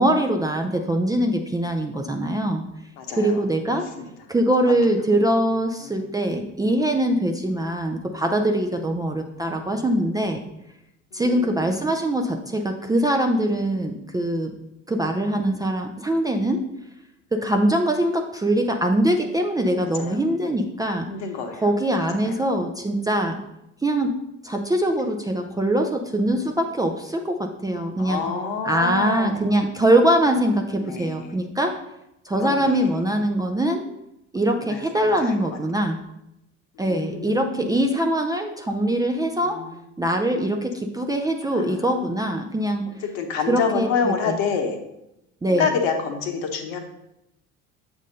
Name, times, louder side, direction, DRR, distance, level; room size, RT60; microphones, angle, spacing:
voice 1, 0.0-2.6 3.2-3.9 4.3-10.4 11.1-14.5 14.9-16.6 17.3-21.1 21.6-23.4 23.8-24.1 24.4-28.2 28.6-31.8 32.3-33.9 34.3-36.0 36.8-39.6 40.0-42.9 43.5-44.4 45.4-45.7, right 1 dB, 10° right, 3 dB, 0.5 m, -23 dB
voice 2, 3.0-3.4 4.0-4.1 11.1-11.5 19.9-20.2 21.1-21.7 22.3-22.4 28.0-29.6 30.8-31.4 32.4-32.9 34.6-35.3 36.8-37.7 39.4-39.7 41.5-41.8 43.0-44.8 45.5-46.8, left 6 dB, 60° left, 5 dB, 1.0 m, -28 dB
7.2 x 2.7 x 5.2 m, 0.85 s
figure-of-eight pair, 55°, 39 cm